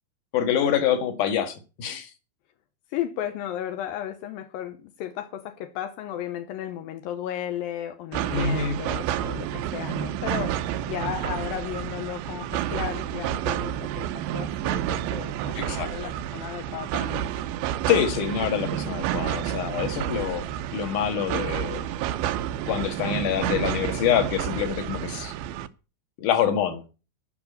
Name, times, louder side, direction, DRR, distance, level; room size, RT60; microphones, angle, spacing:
voice 1, 0.3-2.1 8.3-8.8 15.6-16.1 17.9-20.5 20.7-21.8 22.7-25.3 26.2-26.8, left 9 dB, 55° left, 2.6 m, -26 dB
voice 2, 2.9-17.2, left 11 dB, 80° left, 2.2 m, -34 dB
sound 1, 8.1-25.7, right 11 dB, 85° right, 2.1 m, -30 dB
13.5 x 6.1 x 8.0 m
omnidirectional pair, 5.3 m